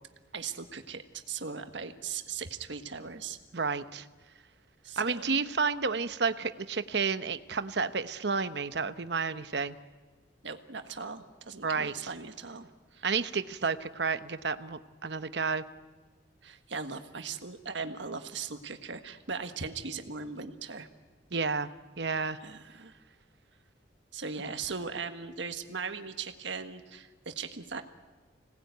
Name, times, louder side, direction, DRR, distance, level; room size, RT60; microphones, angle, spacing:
voice 1, 0.3-3.4 4.8-5.4 10.4-13.1 16.4-20.9 22.4-22.9 24.1-27.8, right 5 dB, 80° right, 7 dB, 1.6 m, -39 dB
voice 2, 3.5-4.1 5.0-9.8 11.6-11.9 13.0-15.6 21.3-21.7 22.0-22.4, right 5 dB, 65° right, 12 dB, 0.9 m, -31 dB
26.0 x 19.0 x 9.3 m, 1.4 s
head